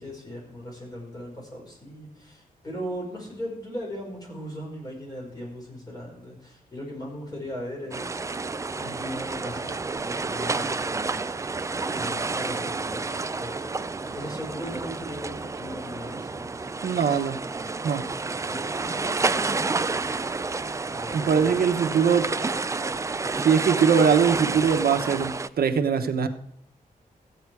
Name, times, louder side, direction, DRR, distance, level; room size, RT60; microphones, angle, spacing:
voice 1, 0.0-8.3 8.8-11.1 11.9-16.6 18.5-19.3 20.9-21.5, equal, 25° left, -2 dB, 5.2 m, -38 dB
sound 1, 7.9-25.5, right 3 dB, 20° right, 0.4 m, -30 dB
voice 2, 16.8-17.4 17.8-18.1 21.1-22.3 23.4-26.3, right 7 dB, 90° right, 7 dB, 1.0 m, -22 dB
15.0 x 8.7 x 4.7 m, 0.77 s
wide cardioid pair, 160°, 15 cm